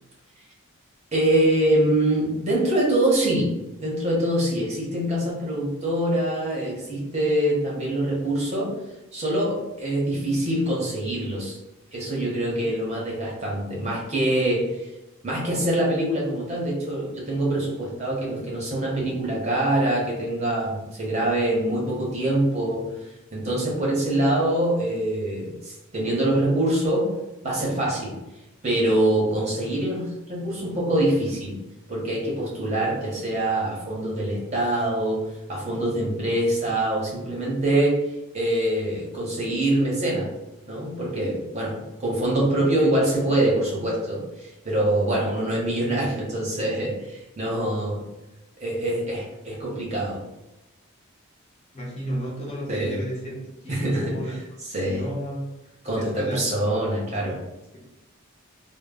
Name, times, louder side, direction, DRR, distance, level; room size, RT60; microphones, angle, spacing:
voice 1, 1.1-8.8 9.1-11.6 11.9-14.9 15.2-28.2 28.6-31.6 31.9-40.3 40.7-48.1 48.6-50.2 52.7-53.0 53.7-54.2 54.7-55.1 55.8-57.4, right 1 dB, 30° right, -5 dB, 0.7 m, -24 dB
voice 2, 51.7-54.3 54.9-55.5 55.9-56.4 57.2-57.3, equal, 30° left, -5 dB, 0.6 m, -32 dB
2.1 x 2.0 x 3.5 m, 0.97 s
head